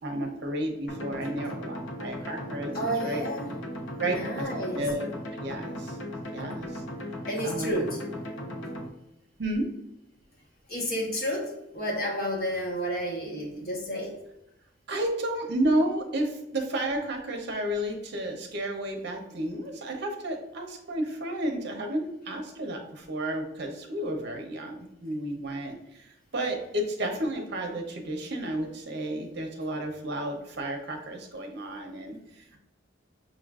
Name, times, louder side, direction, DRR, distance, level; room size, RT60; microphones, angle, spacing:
voice 1, 0.0-2.7 3.0-3.2 4.0-5.1 5.4-6.0 6.3-6.8 7.4-7.8 9.4-9.7 14.9-32.6, right 1 dB, 60° right, 3 dB, 0.7 m, -32 dB
sound 1, 0.9-8.9, equal, 80° left, 0.7 m, -37 dB
voice 2, 2.7-3.5 4.0-4.8 7.3-8.0 10.7-14.2, equal, 50° left, -1 dB, 1.0 m, -31 dB
5.8 x 2.5 x 2.3 m, 0.87 s
head